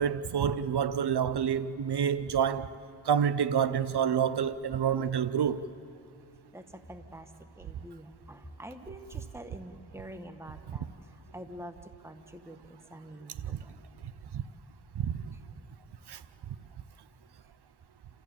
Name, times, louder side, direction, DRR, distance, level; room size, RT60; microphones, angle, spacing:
voice 1, 0.0-2.7 3.0-5.7 13.5-13.6 14.3-14.4 15.0-15.3 16.1-16.2, right 8 dB, 75° right, 0.7 m, -28 dB
voice 2, 6.5-13.7 15.3-15.4, right 1 dB, 5° right, 1.4 m, -46 dB
28.0 x 14.0 x 8.8 m
cardioid pair, 55°, 40 cm